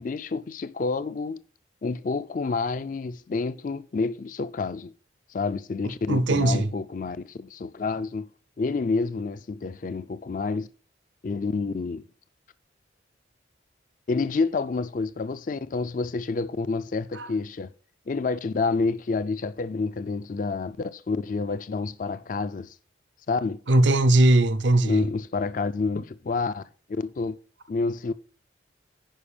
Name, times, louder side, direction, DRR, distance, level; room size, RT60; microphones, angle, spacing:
voice 1, 0.0-1.4 1.8-4.9 5.3-8.3 8.6-10.7 11.2-12.1 14.1-17.7 18.1-22.8 23.3-23.6 24.8-26.6 27.0-27.4 27.7-28.1, left 4 dB, 45° left, 0.4 m, -28 dB
voice 2, 6.1-6.7 17.2-17.3 23.7-25.0, right 1 dB, 70° right, 0.7 m, -19 dB
10.5 x 5.1 x 4.9 m
head